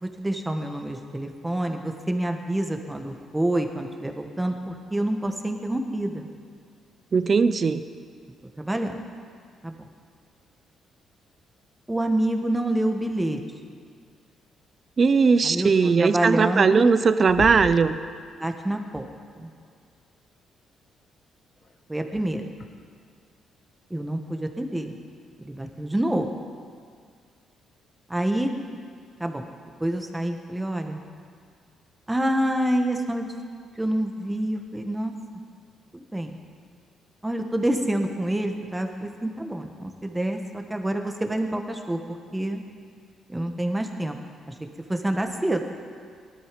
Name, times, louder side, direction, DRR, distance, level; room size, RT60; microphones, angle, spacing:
voice 1, 0.0-6.3 8.6-9.0 9.6-9.7 11.9-13.4 15.4-15.7 16.0-16.9 18.4-19.1 19.4-19.5 21.9-22.4 23.9-24.9 25.4-26.3 28.1-28.5 29.2-29.4 29.8-31.0 32.1-33.3 33.8-35.1 35.9-36.4 37.2-42.6 43.3-44.2 44.5-44.6 44.9-45.6, right 1 dB, 10° right, 4 dB, 1.5 m, -27 dB
voice 2, 7.1-7.8 15.0-18.0, right 5 dB, 40° right, 12 dB, 0.7 m, -19 dB
sound 1, 16.8-17.0 17.3-17.9 19.6-19.7 21.6-21.7 22.6-22.7, left 4 dB, 45° left, 1.4 m, -34 dB
18.5 x 12.0 x 5.3 m, 2.1 s
cardioid pair, 90°, 0 cm